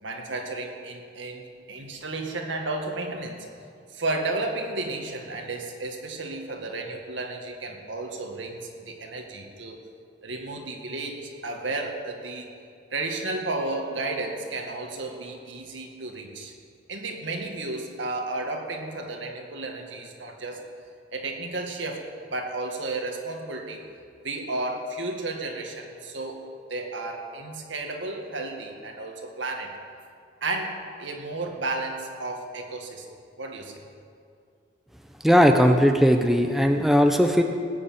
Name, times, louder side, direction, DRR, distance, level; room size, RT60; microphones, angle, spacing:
voice 1, 0.0-3.5 3.9-9.8 10.2-12.5 12.9-16.5 16.9-20.6 21.1-22.0 22.3-23.8 24.2-26.4 26.7-29.7 30.4-33.1 33.4-33.8, right 2 dB, 85° right, 2 dB, 2.0 m, -33 dB
voice 2, 35.2-37.4, equal, ahead, 4 dB, 0.7 m, -18 dB
18.5 x 7.1 x 8.8 m, 2.3 s
head